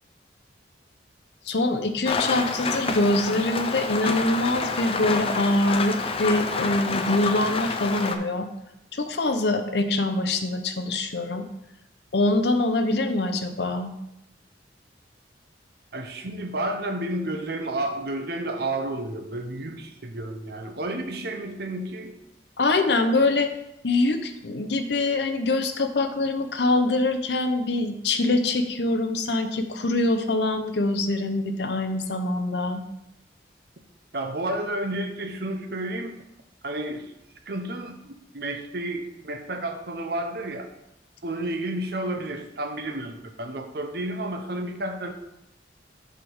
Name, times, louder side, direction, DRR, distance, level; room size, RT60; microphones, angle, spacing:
voice 1, 1.5-8.5 8.9-11.4 12.1-13.9 22.6-23.5 23.8-32.8, left 2 dB, 65° left, 8 dB, 0.7 m, -24 dB
Rain, 2.1-8.2, left 4 dB, 30° left, 0.5 m, -28 dB
voice 2, 15.9-22.2 34.1-36.2 36.6-37.1 37.5-40.7 41.2-45.1, right 1 dB, 60° right, 6 dB, 0.8 m, -31 dB
7.4 x 3.5 x 6.2 m, 0.84 s
head